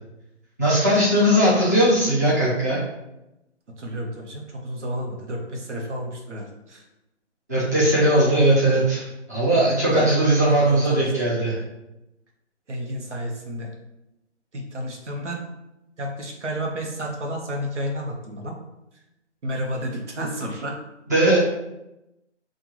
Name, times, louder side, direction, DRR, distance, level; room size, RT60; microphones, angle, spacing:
voice 1, 0.6-2.8 7.5-11.6 21.1-21.4, right 1 dB, 15° right, -9 dB, 0.7 m, -19 dB
voice 2, 3.8-6.9 8.2-8.4 9.9-10.1 10.6-11.1 12.7-13.7 14.5-15.4 16.0-18.5 19.4-20.7, equal, 75° right, 1 dB, 1.3 m, -31 dB
5.7 x 2.6 x 3.0 m, 0.92 s
hypercardioid pair, 170°, 36 cm